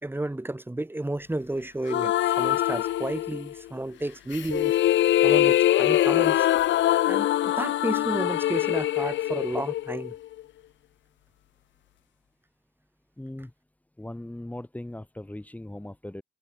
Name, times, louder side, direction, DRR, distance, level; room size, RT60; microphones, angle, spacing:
voice 1, 0.0-4.7 5.2-6.5 7.0-10.1, right 1 dB, 10° right, 5.1 m, -32 dB
sound 1, 1.9-3.6 4.3-10.4, left 13 dB, 70° left, 0.7 m, -23 dB
voice 2, 13.2-13.5 14.0-16.2, left 1 dB, 5° left, 5.0 m, -39 dB
cardioid pair, 90°, 20 cm